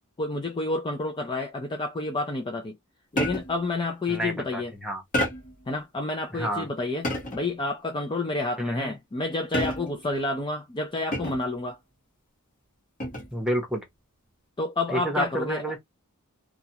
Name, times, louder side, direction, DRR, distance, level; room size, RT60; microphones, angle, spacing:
voice 1, 0.2-2.8 3.1-4.7 5.7-11.8 14.6-15.6, left 2 dB, 20° left, 0.4 m, -29 dB
sound 1, 3.2-3.7 5.1-5.7 7.0-7.6 9.5-10.1 11.1-11.6 13.0-13.4, left 1 dB, 35° left, 1.1 m, -29 dB
voice 2, 4.1-5.0 6.3-6.7 8.6-9.0 13.3-13.8 14.9-15.8, equal, 5° right, 0.9 m, -29 dB
2.4 x 2.2 x 2.8 m
head